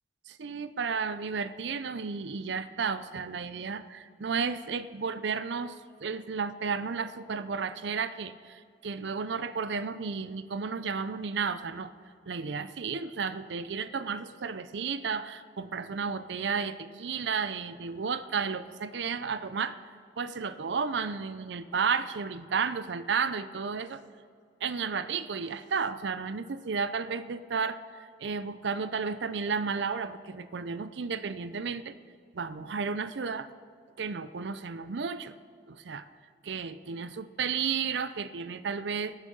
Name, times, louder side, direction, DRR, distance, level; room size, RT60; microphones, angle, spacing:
voice 1, 0.3-11.9 12.3-19.8 20.2-24.0 24.6-31.9 32.3-33.5 34.0-35.3 35.7-36.0 36.4-39.2, right 5 dB, 80° right, 14 dB, 0.5 m, -33 dB
21.5 x 7.3 x 5.4 m, 2.2 s
head